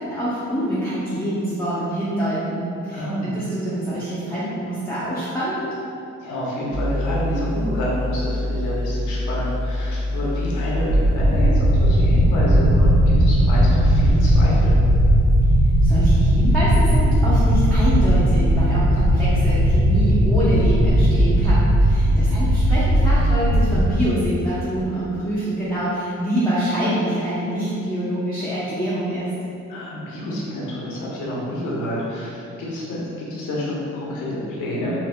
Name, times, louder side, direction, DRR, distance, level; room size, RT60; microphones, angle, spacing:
voice 1, 0.0-5.7 15.8-29.3, right 1 dB, 10° left, -12 dB, 0.7 m, -25 dB
voice 2, 2.9-3.3 6.2-14.8 22.1-22.4 29.7-35.0, equal, 80° left, -6 dB, 0.9 m, -28 dB
sound 1, 6.7-22.0, left 2 dB, 80° right, 1.3 m, -26 dB
sound 2, 10.7-23.9, right 1 dB, 45° right, 0.9 m, -17 dB
3.9 x 2.6 x 2.2 m, 2.6 s
cardioid pair, 90°, 30 cm